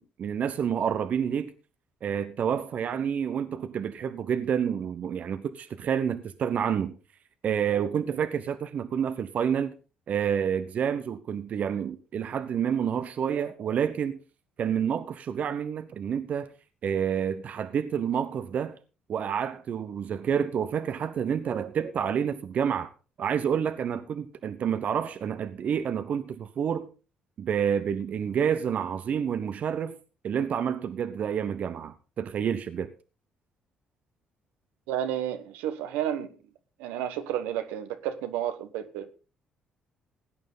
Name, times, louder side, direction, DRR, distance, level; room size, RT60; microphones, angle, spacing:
voice 1, 0.0-1.5 2.0-7.0 7.4-9.8 10.1-14.2 14.6-16.5 16.8-18.8 19.1-22.9 23.2-26.9 27.4-30.0 30.2-32.9, right 8 dB, 55° right, 0.9 m, -29 dB
voice 2, 34.9-36.3 36.8-39.1, right 11 dB, 80° right, 1.2 m, -31 dB
17.0 x 9.1 x 3.9 m
hypercardioid pair, 50°, 3 cm